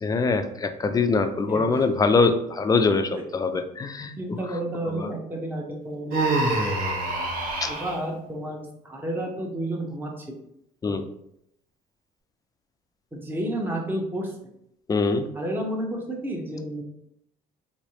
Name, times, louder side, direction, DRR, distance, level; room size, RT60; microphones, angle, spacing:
voice 1, 0.0-4.4 4.9-5.1 7.6-7.7 10.8-11.0 14.9-15.3, left 4 dB, 20° left, 8 dB, 0.3 m, -23 dB
voice 2, 1.4-1.8 3.1-3.2 4.2-6.5 7.7-10.3 10.9-11.0 13.1-14.5 15.3-16.8, right 1 dB, 10° right, 0 dB, 0.7 m, -31 dB
Human voice, 6.1-8.0, right 2 dB, 55° right, 0.9 m, -25 dB
3.5 x 3.1 x 2.7 m, 0.75 s
cardioid pair, 110°, 17 cm